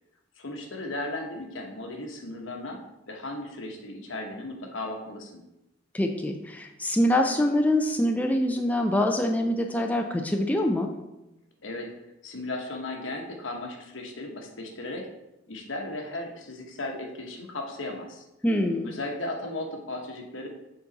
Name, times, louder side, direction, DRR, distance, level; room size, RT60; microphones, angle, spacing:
voice 1, 0.4-5.4 11.6-11.9 12.2-15.1 15.5-18.2 18.8-20.5, left 2 dB, 75° left, 2 dB, 1.1 m, -36 dB
voice 2, 5.9-10.9 18.4-18.9, left 1 dB, 10° left, 3 dB, 0.4 m, -24 dB
6.9 x 3.9 x 4.0 m, 0.93 s
head